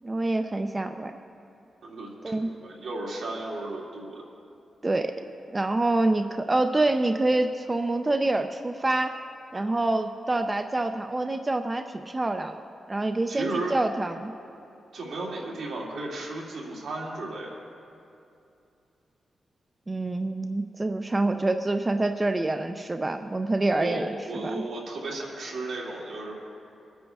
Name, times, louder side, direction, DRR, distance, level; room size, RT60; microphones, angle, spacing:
voice 1, 0.0-1.1 2.2-2.5 4.8-5.1 5.5-9.2 9.5-12.6 12.9-14.3 19.9-24.1 24.4-24.6, right 2 dB, 20° right, 7 dB, 0.4 m, -26 dB
voice 2, 1.8-4.2 13.3-13.8 14.9-17.6 23.8-26.3, right 2 dB, 80° right, -3 dB, 2.1 m, -34 dB
26.0 x 9.4 x 2.3 m, 2.6 s
wide cardioid pair, 130°, 0 cm